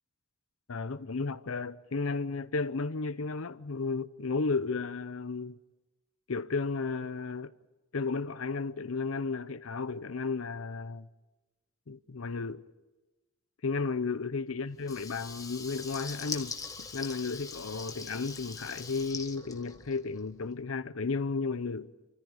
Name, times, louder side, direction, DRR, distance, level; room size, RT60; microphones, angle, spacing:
voice 1, 0.7-5.6 6.3-7.5 7.9-11.1 11.9-12.7 13.6-21.9, left 4 dB, 80° left, 0.7 m, -33 dB
Water tap faucet / Liquid, 14.8-20.3, left 5 dB, 15° left, 1.3 m, -42 dB
27.0 x 14.0 x 9.7 m
head